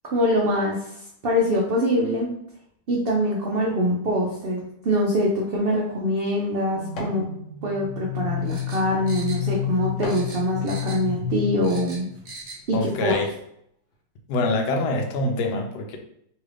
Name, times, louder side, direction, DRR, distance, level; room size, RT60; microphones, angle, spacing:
voice 1, 0.0-0.8 1.2-2.3 2.9-7.2 7.6-12.1 12.7-13.2, equal, 80° right, -2 dB, 0.5 m, -24 dB
sound 1, 5.4-7.3 7.7-10.4 11.0-11.2 11.9-12.1 12.6-13.4 13.9-14.0, left 1 dB, 60° left, 1.0 m, -40 dB
sound 2, 6.8-12.3, left 9 dB, 25° left, 0.8 m, -30 dB
sound 3, 8.4-9.8 10.0-11.2 11.4-12.6 12.9-13.0, right 3 dB, 55° right, 0.8 m, -41 dB
voice 2, 12.7-13.3 14.3-16.0, left 2 dB, 80° left, 3 dB, 1.2 m, -25 dB
3.1 x 2.5 x 3.3 m, 0.71 s
omnidirectional pair, 1.7 m